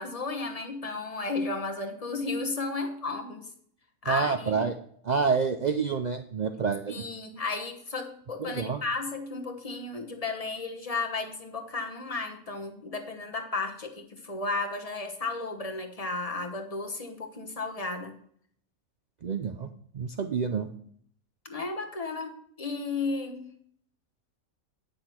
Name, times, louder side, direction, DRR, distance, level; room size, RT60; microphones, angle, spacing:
voice 1, 0.0-3.5 4.0-4.7 6.9-18.1 21.4-23.5, left 3 dB, 30° left, 4 dB, 1.0 m, -34 dB
voice 2, 4.1-4.8 5.0-7.0 8.4-8.8 19.2-19.7 19.9-20.7, right 5 dB, 80° right, 7 dB, 0.4 m, -28 dB
9.6 x 6.3 x 4.3 m, 0.63 s
omnidirectional pair, 1.5 m